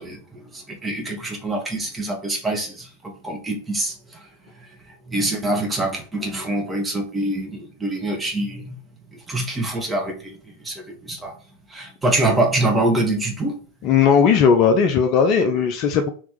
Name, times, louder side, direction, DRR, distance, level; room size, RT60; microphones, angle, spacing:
voice 1, 0.0-4.2 5.1-8.8 9.1-10.4 10.6-11.3 11.7-13.6, right 2 dB, 10° right, 0 dB, 1.4 m, -25 dB
voice 2, 13.8-16.1, left 6 dB, 40° left, 6 dB, 0.6 m, -17 dB
3.6 x 3.0 x 4.7 m, 0.39 s
figure-of-eight pair, 90°, 0 cm